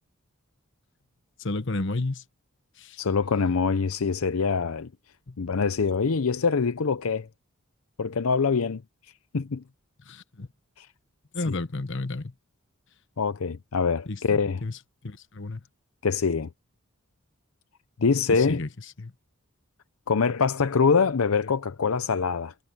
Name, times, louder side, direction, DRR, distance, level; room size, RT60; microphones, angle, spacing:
voice 1, 1.4-2.2 2.8-3.0 5.3-5.4 10.1-10.5 11.3-12.3 14.1-14.8 15.0-15.6 18.3-18.7 19.0-19.1, left 2 dB, 60° left, 1.1 m, -32 dB
voice 2, 3.0-4.9 5.4-7.3 8.0-8.8 9.3-9.6 10.8-10.9 11.5-11.6 13.2-14.6 16.0-16.5 18.0-18.6 20.1-22.5, left 5 dB, 80° left, 0.7 m, -24 dB
head